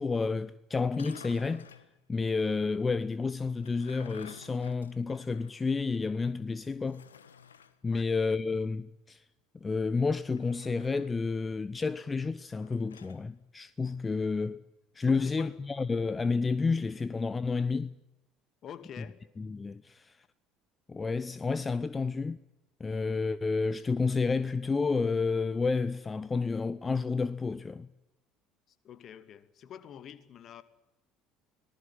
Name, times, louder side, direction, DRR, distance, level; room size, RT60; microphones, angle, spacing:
voice 1, 0.0-1.7 2.1-7.0 7.8-9.2 9.6-14.6 14.9-17.9 19.4-20.2 20.9-22.4 22.8-27.9, left 4 dB, 25° left, 0.9 m, -30 dB
sound 1, 0.8-1.9 3.4-5.7 6.0-6.1 6.9-7.8 10.2-11.2 12.6-13.2, left 7 dB, 80° left, 1.5 m, -52 dB
voice 2, 15.0-15.6 18.6-19.2 28.7-30.6, left 9 dB, 45° left, 2.4 m, -47 dB
25.0 x 19.5 x 9.7 m
figure-of-eight pair, 65°, 0 cm